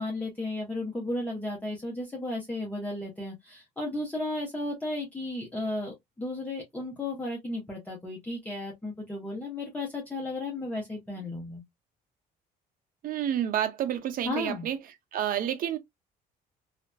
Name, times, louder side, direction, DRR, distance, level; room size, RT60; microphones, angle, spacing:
voice 1, 0.0-11.6 14.2-14.7, left 2 dB, 10° left, 1.1 m, -34 dB
voice 2, 13.0-14.8 15.1-15.8, right 10 dB, 55° right, 0.6 m, -29 dB
2.8 x 2.4 x 2.2 m
cardioid pair, 110°, 17 cm